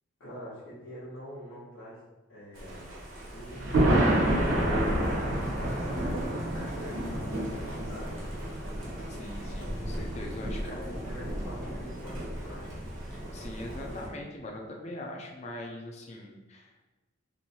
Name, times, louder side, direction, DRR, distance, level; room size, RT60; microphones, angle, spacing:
voice 1, 0.2-2.0 2.3-2.8 3.3-5.6 6.2-8.2 10.5-12.7, equal, 85° left, -10 dB, 1.0 m, -45 dB
Thunder, 2.6-14.1, right 1 dB, 90° right, 1.2 m, -30 dB
voice 2, 9.1-11.0 13.1-16.8, left 1 dB, 35° left, 1 dB, 0.5 m, -42 dB
3.0 x 2.7 x 4.1 m, 1.1 s
head